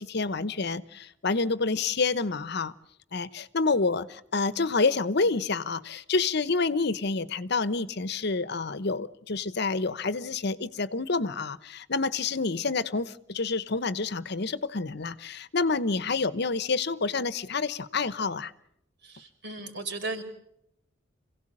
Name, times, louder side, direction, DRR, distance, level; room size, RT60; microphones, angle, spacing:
voice 1, 0.0-2.7 3.1-18.5, left 4 dB, 60° left, 16 dB, 1.0 m, -28 dB
voice 2, 19.0-20.2, right 3 dB, 65° right, 5 dB, 5.0 m, -36 dB
27.5 x 17.0 x 8.7 m, 0.77 s
head